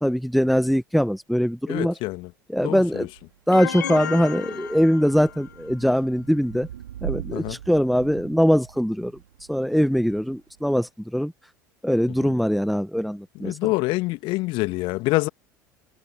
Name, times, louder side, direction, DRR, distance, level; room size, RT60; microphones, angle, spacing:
voice 1, 0.0-1.9 2.5-3.1 3.5-6.7 7.0-9.1 9.5-11.3 11.8-13.7, equal, ahead, 1.0 m, -22 dB
voice 2, 1.7-2.3 2.6-3.1 7.3-7.6 12.2-12.3 13.4-15.3, left 22 dB, 55° left, 2.0 m, -26 dB
Thunder / Rain, 2.6-10.9, right 11 dB, 75° right, 2.9 m, -41 dB
sound 1, 3.5-5.6, left 9 dB, 75° left, 3.5 m, -33 dB
figure-of-eight pair, 70°, 10 cm